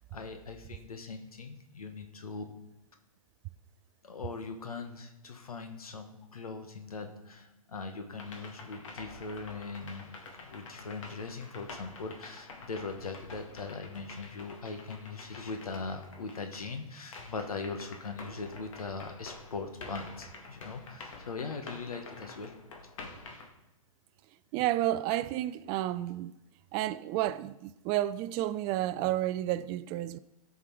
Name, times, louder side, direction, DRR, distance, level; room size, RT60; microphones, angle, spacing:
voice 1, 0.1-2.4 4.0-22.5, left 4 dB, 80° left, 1.3 m, -40 dB
sound 1, 8.1-16.8 17.1-23.5, left 3 dB, 60° left, 2.0 m, -48 dB
voice 2, 24.5-26.3 26.7-30.2, right 14 dB, 25° right, 0.3 m, -31 dB
17.0 x 6.4 x 4.6 m
figure-of-eight pair, 115°, 19 cm